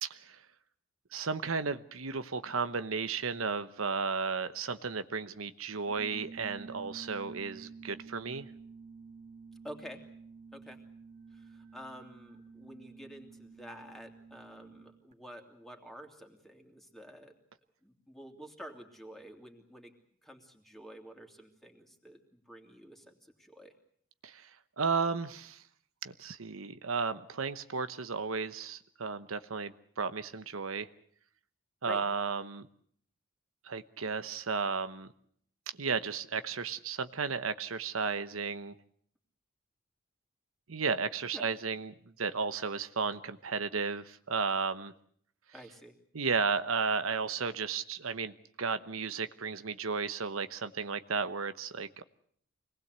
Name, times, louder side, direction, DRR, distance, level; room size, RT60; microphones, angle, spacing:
voice 1, 0.0-0.4 1.1-8.5 24.2-24.5 24.8-25.6 26.0-30.9 31.8-32.7 33.6-35.1 35.8-38.7 40.7-44.9 46.1-52.0, right 5 dB, 85° right, 11 dB, 1.0 m, -34 dB
sound 1, 5.9-15.1, right 4 dB, 35° right, 1.8 m, -50 dB
voice 2, 9.6-10.0 10.5-10.8 11.3-17.3 17.8-19.9 20.2-23.7 31.8-32.0 41.3-41.5 45.5-46.0, equal, ahead, 3 dB, 2.9 m, -49 dB
25.5 x 19.5 x 8.1 m, 0.62 s
head